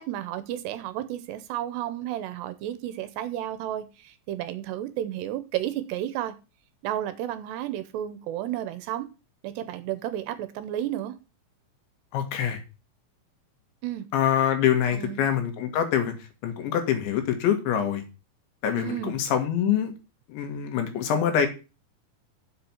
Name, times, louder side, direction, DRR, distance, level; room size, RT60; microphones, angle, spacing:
voice 1, 0.0-6.3 6.8-9.1 9.4-11.2 13.8-14.1 14.9-15.3 18.8-19.2, right 12 dB, 80° right, 12 dB, 2.7 m, -32 dB
voice 2, 12.1-12.6 14.1-16.1 16.4-18.0 18.6-19.9 20.3-21.5, left 9 dB, 80° left, 6 dB, 4.0 m, -25 dB
7.7 x 6.0 x 7.2 m, 0.30 s
omnidirectional pair, 5.2 m